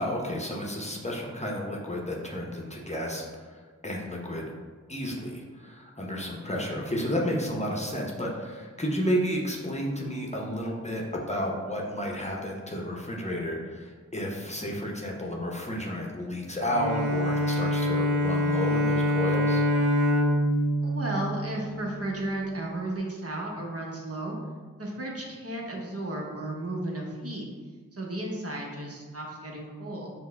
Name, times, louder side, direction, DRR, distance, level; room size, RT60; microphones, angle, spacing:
voice 1, 0.0-4.4 4.9-19.6, equal, 20° left, -2 dB, 0.7 m, -32 dB
Bowed string instrument, 16.7-22.1, equal, 65° right, 0.6 m, -25 dB
voice 2, 20.8-24.4 24.8-27.4 27.9-30.1, right 1 dB, 50° right, -1 dB, 0.9 m, -34 dB
5.6 x 2.2 x 3.3 m, 1.5 s
cardioid pair, 40°, 31 cm